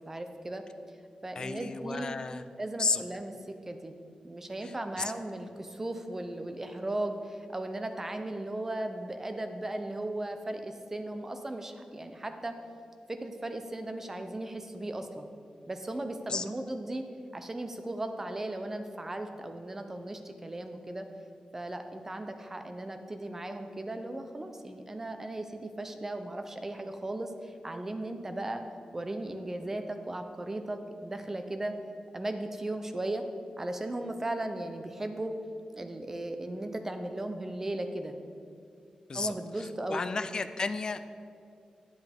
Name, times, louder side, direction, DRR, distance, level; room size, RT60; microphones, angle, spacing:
voice 1, 0.1-0.6 1.2-2.2 2.6-3.3 3.7-3.9 4.2-12.6 13.1-15.3 15.7-17.1 17.3-21.1 21.5-28.6 28.9-31.8 32.1-33.2 33.6-35.3 35.7-38.2 39.1-40.0, right 1 dB, 20° right, 6 dB, 0.6 m, -36 dB
voice 2, 1.4-2.4 2.8-3.0 4.6-5.1 16.3-16.4 39.1-41.0, left 4 dB, 35° left, 10 dB, 0.3 m, -33 dB
10.0 x 8.2 x 3.5 m, 2.4 s
wide cardioid pair, 165°, 2 cm